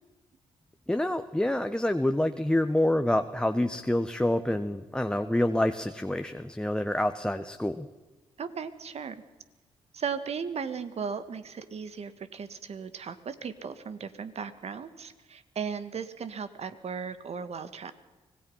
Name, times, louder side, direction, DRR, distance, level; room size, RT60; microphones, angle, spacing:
voice 1, 0.9-7.9, left 1 dB, 5° left, 8 dB, 1.2 m, -27 dB
voice 2, 8.4-9.2 9.9-17.9, right 6 dB, 55° right, 11 dB, 1.9 m, -36 dB
25.0 x 18.5 x 5.7 m, 1.2 s
hypercardioid pair, 45°, 13 cm